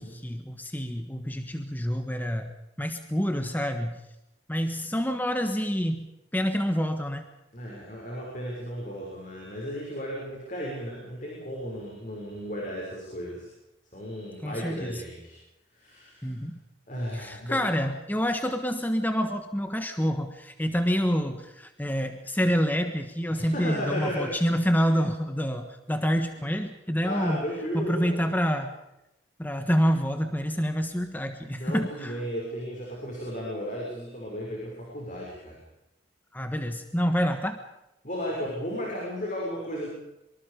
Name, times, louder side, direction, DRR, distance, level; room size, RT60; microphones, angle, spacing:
voice 1, 0.0-2.5 2.8-4.0 4.5-7.2 14.4-15.0 16.2-16.6 17.1-27.4 27.7-28.7 29.4-32.2 36.3-37.6, equal, 10° left, 7 dB, 1.3 m, -27 dB
voice 2, 7.5-13.5 13.9-15.4 15.7-16.4 16.9-17.6 23.3-24.3 24.7-24.8 27.0-28.3 31.4-35.6 38.0-39.9, equal, 40° left, -3 dB, 6.5 m, -35 dB
25.0 x 24.5 x 5.2 m, 0.90 s
head